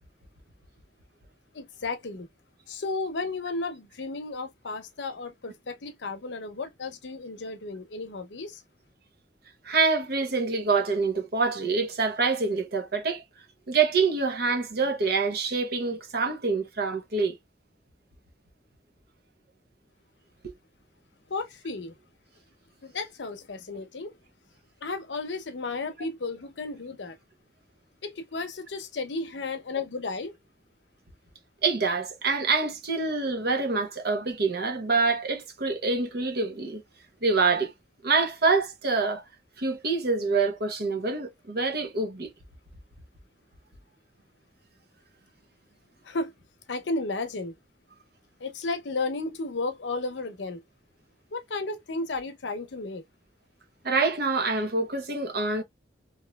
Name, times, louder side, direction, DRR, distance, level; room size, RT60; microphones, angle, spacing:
voice 1, 1.5-2.3 2.7-8.6 21.3-22.0 22.8-24.1 24.8-27.2 28.0-30.3 46.0-46.3 46.7-47.5 48.4-50.6 51.3-53.0, left 3 dB, 90° left, 0.7 m, -33 dB
voice 2, 9.6-13.2 13.7-17.4 31.6-36.8 37.2-37.7 38.0-39.2 39.6-42.3 53.8-55.6, right 4 dB, 60° right, 0.8 m, -26 dB
3.0 x 2.7 x 2.3 m
head